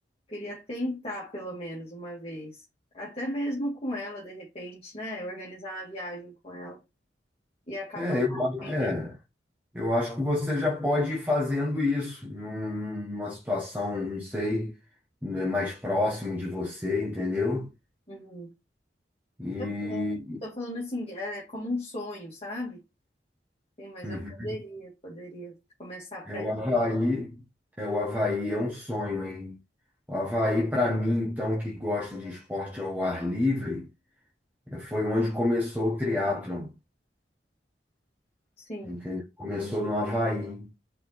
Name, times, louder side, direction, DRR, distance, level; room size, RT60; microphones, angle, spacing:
voice 1, 0.3-2.6 2.9-6.8 7.7-8.7 18.1-18.5 19.6-22.8 23.8-25.5 25.8-26.5 38.6-39.0, left 1 dB, 35° left, 2.0 m, -36 dB
voice 2, 7.9-9.1 9.7-14.7 15.2-17.7 19.4-20.4 24.0-24.5 26.3-27.4 27.8-29.6 30.1-33.9 34.7-36.7 38.8-40.7, left 2 dB, 10° right, 1.4 m, -28 dB
4.9 x 4.6 x 4.2 m
head